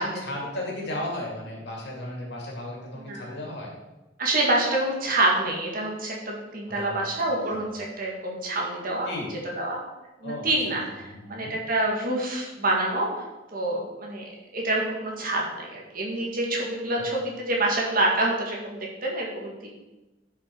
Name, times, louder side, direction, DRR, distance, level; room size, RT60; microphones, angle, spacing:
voice 1, 0.0-3.7 6.7-7.8 9.1-9.3 10.2-11.6, left 1 dB, 60° left, -1 dB, 2.5 m, -36 dB
voice 2, 3.0-3.3 4.2-9.1 9.6-9.8 10.2-13.1 13.5-14.2 14.5-19.7, right 2 dB, 45° right, -1 dB, 2.0 m, -27 dB
10.5 x 5.7 x 4.6 m, 1.1 s
head